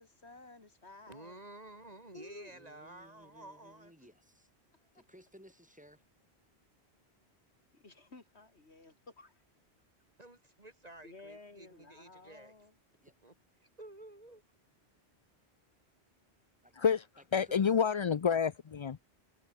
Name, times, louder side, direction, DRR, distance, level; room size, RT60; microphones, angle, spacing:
voice 1, 0.0-1.4 2.1-2.5 4.8-4.9 7.7-9.4 11.0-12.7, left 3 dB, 85° left, 3.5 m, -54 dB
voice 2, 1.1-3.9 10.2-12.5 13.2-13.3 13.6-14.4, right 2 dB, 40° right, 2.6 m, -52 dB
voice 3, 2.5-4.5 4.9-6.1 13.0-13.2 16.6-16.7 17.2-17.7, equal, 5° right, 4.8 m, -59 dB
voice 4, 17.3-19.0, left 7 dB, 45° left, 0.4 m, -29 dB
omnidirectional pair, 1.1 m